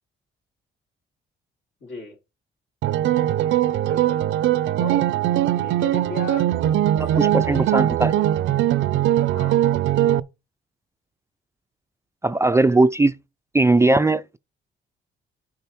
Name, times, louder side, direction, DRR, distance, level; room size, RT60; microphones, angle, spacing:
voice 1, 1.8-2.2 3.9-4.3 4.8-5.1 5.5-6.5 6.9-7.7 9.1-9.7, left 4 dB, 70° left, 3.6 m, -36 dB
sound 1, 2.8-10.2, right 12 dB, 75° right, 0.5 m, -20 dB
voice 2, 7.2-8.1 12.2-13.2 13.5-14.4, right 2 dB, 15° right, 0.4 m, -19 dB
9.2 x 5.1 x 4.4 m
cardioid pair, 90°, 20 cm